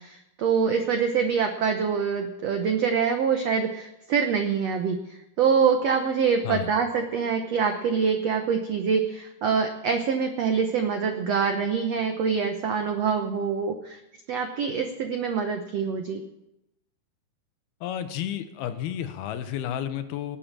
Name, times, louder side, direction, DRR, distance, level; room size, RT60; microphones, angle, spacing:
voice 1, 0.0-14.0 14.3-16.2, right 6 dB, 80° right, 6 dB, 1.4 m, -25 dB
voice 2, 17.8-20.4, left 10 dB, 85° left, 10 dB, 2.9 m, -31 dB
19.0 x 8.6 x 7.4 m, 0.88 s
omnidirectional pair, 4.4 m